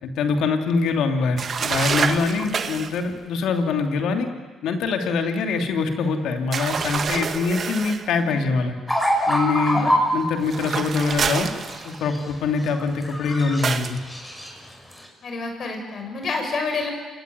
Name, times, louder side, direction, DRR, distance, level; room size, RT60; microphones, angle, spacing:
voice 1, 0.0-4.3 4.6-8.8 9.3-11.5 11.8-14.0, left 4 dB, 75° left, 5 dB, 2.8 m, -24 dB
sound 1, 1.4-3.0 6.5-8.1 10.4-12.2 13.6-14.0, right 6 dB, 50° right, 1.7 m, -27 dB
voice 2, 2.2-2.6 8.3-8.5 9.7-9.9 15.2-16.9, left 4 dB, 55° left, 3 dB, 7.1 m, -29 dB
sound 2, 8.9-10.2 11.5-12.3 12.6-13.7 14.0-14.5 14.9-15.0, equal, 10° left, 6.3 m, -24 dB
28.5 x 19.0 x 9.6 m, 1.3 s
supercardioid pair, 65°, 0 cm